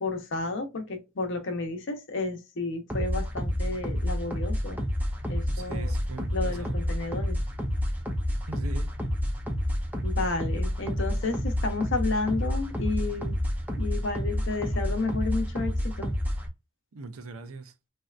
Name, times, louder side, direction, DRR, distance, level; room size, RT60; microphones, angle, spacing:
voice 1, 0.0-4.8 5.3-5.9 6.3-7.4 10.0-13.4 13.8-16.1, left 3 dB, 60° left, 0.8 m, -31 dB
sound 1, 2.9-16.5, equal, 10° right, 0.5 m, -29 dB
voice 2, 5.5-6.8 8.5-8.9 16.9-17.7, right 3 dB, 80° right, 0.6 m, -41 dB
3.3 x 2.7 x 2.4 m
head